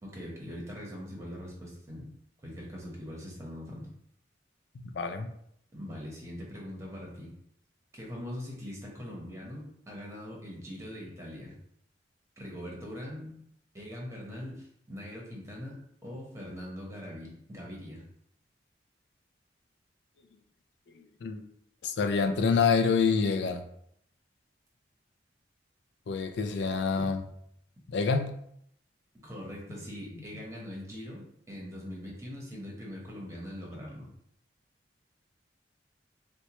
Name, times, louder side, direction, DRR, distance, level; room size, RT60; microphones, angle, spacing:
voice 1, 0.0-2.1 2.4-3.9 5.7-7.3 7.9-11.5 12.4-13.4 13.7-18.0 29.2-34.1, equal, 15° right, -3 dB, 0.9 m, -42 dB
voice 2, 4.7-5.3 21.2-21.4 21.8-23.6 26.1-27.3 27.9-28.4 32.5-32.6, left 5 dB, 70° left, 6 dB, 0.4 m, -27 dB
4.2 x 2.2 x 2.9 m, 0.71 s
head